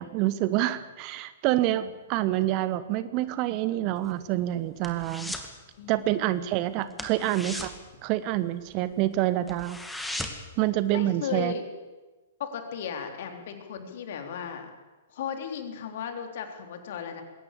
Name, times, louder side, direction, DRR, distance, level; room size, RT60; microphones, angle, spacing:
voice 1, 0.0-5.3 5.9-9.8 10.6-11.5, right 14 dB, 35° right, 15 dB, 1.1 m, -27 dB
sound 1, 4.0-5.6 5.8-6.1 6.4-6.5 6.9-8.8 9.1-9.2 9.5-10.6 10.9-11.0, left 1 dB, 5° left, 2.3 m, -37 dB
voice 2, 5.8-7.0 10.9-11.6 12.4-14.7 15.1-17.2, left 7 dB, 55° left, 5 dB, 3.7 m, -36 dB
21.0 x 17.5 x 8.4 m, 1.2 s
figure-of-eight pair, 110°, 0 cm